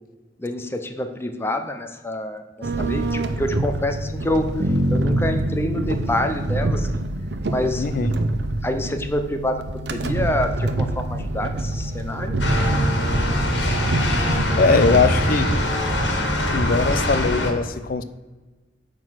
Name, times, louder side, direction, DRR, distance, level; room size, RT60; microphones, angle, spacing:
voice 1, 0.4-4.5 4.9-7.1 7.5-7.8 8.6-12.4, left 1 dB, 15° left, 6 dB, 0.6 m, -27 dB
sound 1, 2.6-15.1, right 2 dB, 65° right, 0.7 m, -26 dB
Bass guitar, 4.6-8.5, equal, 50° right, 1.2 m, -27 dB
voice 2, 7.8-8.1 14.3-15.5 16.0-16.1 16.5-18.0, left 4 dB, 50° left, 12 dB, 0.5 m, -21 dB
sound 2, 12.4-17.5, equal, 85° left, 1.6 m, -22 dB
9.1 x 3.9 x 6.3 m, 1.2 s
head